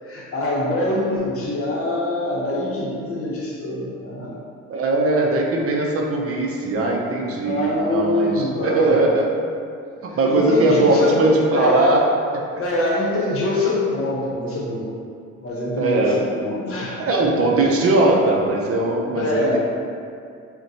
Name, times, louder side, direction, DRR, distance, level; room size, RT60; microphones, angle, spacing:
voice 1, 0.0-4.3 7.4-9.1 10.1-12.1 12.5-14.9 15.4-17.0 19.1-19.6, left 1 dB, 45° left, -4 dB, 0.8 m, -24 dB
voice 2, 4.7-9.3 10.0-12.0 15.8-16.2 17.0-19.6, right 2 dB, 50° right, 0 dB, 0.5 m, -20 dB
3.8 x 2.1 x 2.7 m, 2.4 s
cardioid pair, 90°, 30 cm